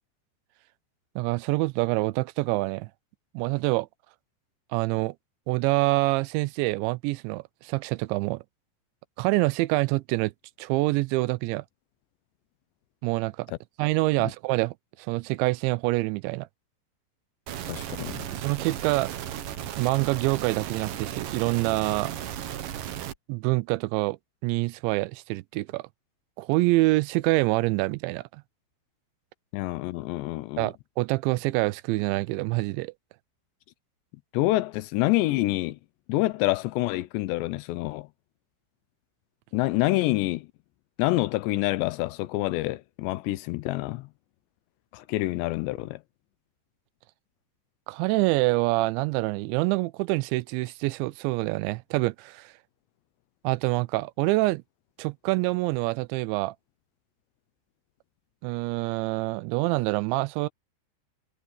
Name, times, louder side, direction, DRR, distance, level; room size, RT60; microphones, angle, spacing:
voice 1, 1.2-2.9 3.3-3.9 4.7-5.2 5.5-8.4 9.2-10.3 10.6-11.6 13.0-13.5 13.8-16.5 18.3-19.1 19.8-22.1 23.3-24.2 24.4-25.9 26.4-28.4 30.6-32.9 47.9-52.5 53.4-54.6 55.0-56.6 58.4-60.5, right 21 dB, 85° right, 2.9 m, -26 dB
sound 1, 17.5-23.1, right 10 dB, 65° right, 2.5 m, -35 dB
voice 2, 17.7-18.3 29.5-30.7 34.3-35.8 36.1-38.1 39.5-40.5 41.0-44.1 44.9-46.0, left 18 dB, 80° left, 2.9 m, -27 dB
omnidirectional pair, 5.2 m